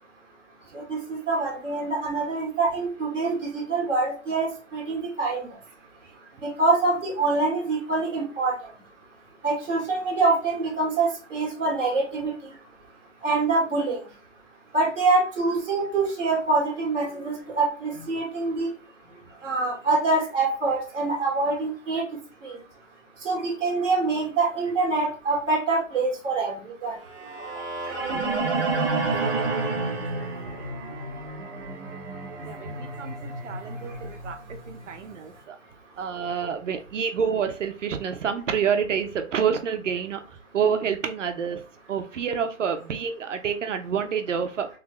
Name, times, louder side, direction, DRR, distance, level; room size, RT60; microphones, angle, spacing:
voice 1, 0.7-5.5 6.4-8.5 9.4-12.5 13.2-14.0 14.7-18.7 19.4-22.0 22.4-22.6 23.2-26.9, right 3 dB, ahead, -22 dB, 0.4 m, -25 dB
sound 1, 27.1-35.1, right 3 dB, 20° right, 0.8 m, -30 dB
voice 2, 29.3-29.7 32.4-35.6 36.0-40.2 40.5-41.6 41.9-44.7, right 7 dB, 70° right, 7 dB, 0.9 m, -28 dB
3.7 x 3.3 x 3.1 m, 0.36 s
hypercardioid pair, 155°, 39 cm